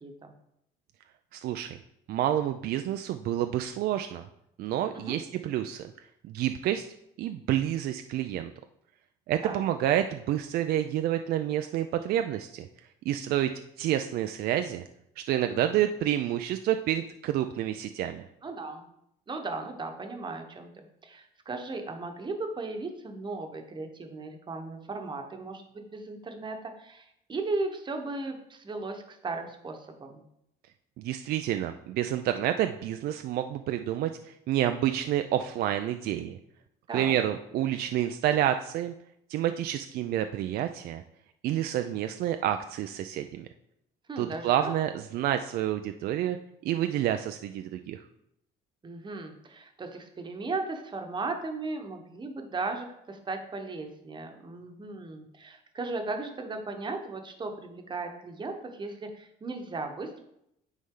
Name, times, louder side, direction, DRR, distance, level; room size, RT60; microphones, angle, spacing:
voice 1, 0.0-0.3 4.9-5.2 9.4-9.6 18.4-18.8 19.3-30.2 36.9-37.2 44.1-44.7 48.8-60.2, right 3 dB, 25° right, 4 dB, 1.1 m, -36 dB
voice 2, 1.3-1.8 2.1-4.3 4.6-5.9 6.2-6.9 7.2-8.5 9.3-12.7 13.1-13.5 13.8-14.8 15.2-18.3 31.0-36.4 36.9-38.9 39.3-41.0 41.4-43.5 44.2-46.4 46.6-48.0, right 11 dB, 65° right, 8 dB, 0.4 m, -29 dB
9.6 x 4.2 x 3.8 m, 0.78 s
cardioid pair, 110°, 17 cm